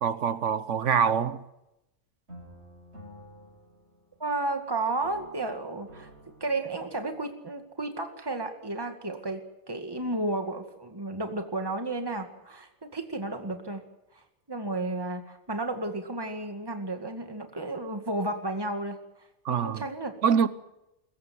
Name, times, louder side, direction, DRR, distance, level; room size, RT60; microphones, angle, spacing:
voice 1, 0.0-1.4 19.4-19.8 20.2-20.5, right 7 dB, 90° right, 1.4 m, -25 dB
sound 1, 2.3-4.6 5.0-7.3, equal, 70° right, 6.4 m, -51 dB
voice 2, 4.2-6.1 6.4-9.4 9.7-13.8 14.2-19.0 19.5-20.1, right 2 dB, 20° right, 2.2 m, -32 dB
24.0 x 14.5 x 9.5 m
omnidirectional pair, 1.2 m